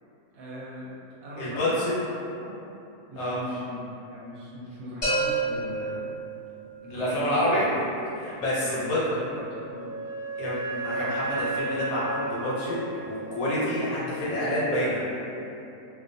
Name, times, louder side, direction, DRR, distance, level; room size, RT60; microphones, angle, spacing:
voice 1, 0.3-2.1 2.4-2.6 3.1-3.8 4.1-6.1 6.8-7.7 8.6-9.9 13.8-14.0, equal, 70° right, -6 dB, 1.0 m, -40 dB
voice 2, 1.4-1.9 3.2-3.4 6.9-7.7 8.2-9.0 10.4-12.8 13.0-15.0, left 1 dB, 70° left, -8 dB, 1.2 m, -27 dB
sound 1, 5.0-6.9, right 2 dB, 30° left, 0.5 m, -29 dB
Wind instrument woodwind instrument, 9.2-13.9, right 2 dB, 35° right, 0.9 m, -34 dB
2.5 x 2.3 x 2.6 m, 2.8 s
omnidirectional pair, 1.6 m